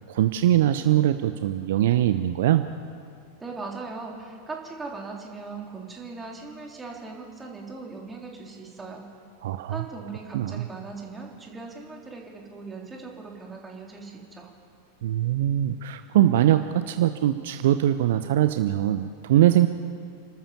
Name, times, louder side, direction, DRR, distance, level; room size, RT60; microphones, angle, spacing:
voice 1, 0.1-2.7 9.4-9.8 10.3-10.7 15.0-19.7, right 12 dB, 55° right, 10 dB, 0.7 m, -22 dB
voice 2, 3.4-9.1 9.7-14.5, right 4 dB, 15° right, 0 dB, 3.6 m, -39 dB
29.5 x 13.0 x 7.2 m, 2.4 s
figure-of-eight pair, 90°, 0 cm